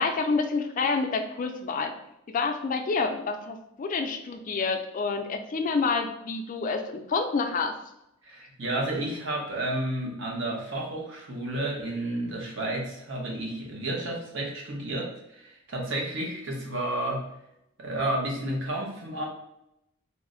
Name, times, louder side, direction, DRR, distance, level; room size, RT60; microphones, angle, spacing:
voice 1, 0.0-1.9 2.3-7.8, left 4 dB, 40° left, 6 dB, 0.3 m, -28 dB
voice 2, 8.2-17.3 17.8-19.3, right 1 dB, 65° right, -1 dB, 0.9 m, -31 dB
3.1 x 2.0 x 3.7 m, 0.81 s
head